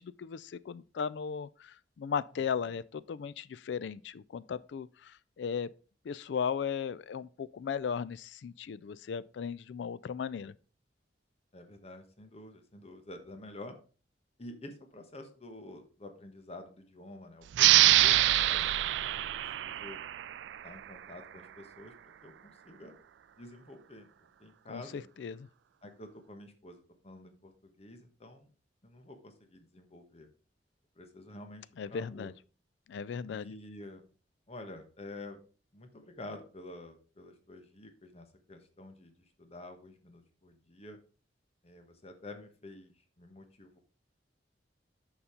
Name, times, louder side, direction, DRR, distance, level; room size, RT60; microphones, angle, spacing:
voice 1, 0.0-5.7 6.1-10.5 24.7-25.5 31.8-32.3 32.9-33.5, left 6 dB, 80° left, 0.4 m, -36 dB
voice 2, 11.5-13.7 14.4-18.2 18.5-20.0 20.6-21.9 22.2-23.0 23.4-24.1 24.4-25.1 25.8-28.5 28.8-30.3 31.0-32.3 33.3-34.1 34.5-35.4 35.7-41.0 41.6-43.8, left 1 dB, 35° left, 1.2 m, -49 dB
sound 1, 17.5-20.8, right 15 dB, 85° right, 0.3 m, -25 dB
7.0 x 5.6 x 5.0 m
head